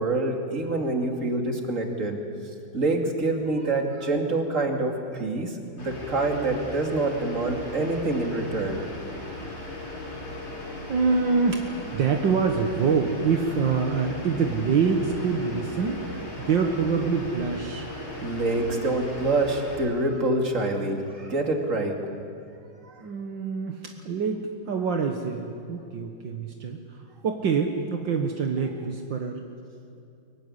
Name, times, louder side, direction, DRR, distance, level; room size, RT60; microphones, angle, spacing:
voice 1, 0.0-2.2 2.7-8.8 18.2-22.0 22.8-22.9, right 2 dB, 40° right, 2 dB, 3.0 m, -26 dB
sound 1, 5.8-19.8, left 1 dB, 70° left, 5.5 m, -37 dB
voice 2, 10.5-17.9 23.0-29.4, right 5 dB, 70° right, 3 dB, 2.1 m, -26 dB
24.0 x 22.5 x 9.9 m, 2.5 s
omnidirectional pair, 2.1 m